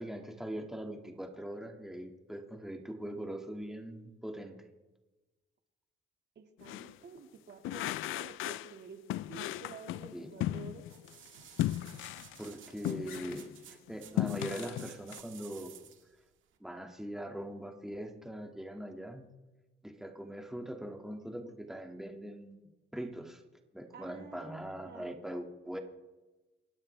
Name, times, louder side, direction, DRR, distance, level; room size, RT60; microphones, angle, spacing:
voice 1, 0.0-4.6 10.1-10.3 12.4-13.5 13.9-15.7 16.6-19.3 19.8-23.4 23.7-25.8, right 1 dB, ahead, 3 dB, 2.0 m, -41 dB
voice 2, 6.4-10.8 23.9-25.1, right 6 dB, 60° right, 5 dB, 2.0 m, -50 dB
sound 1, 6.6-6.9 7.6-8.7 9.1-11.1 11.6-13.5 13.9-15.2, left 15 dB, 85° left, 0.5 m, -36 dB
sound 2, 10.9-16.1 16.6-16.7, right 10 dB, 75° right, 1.9 m, -54 dB
28.5 x 13.0 x 3.3 m, 1.1 s
cardioid pair, 90°, 20 cm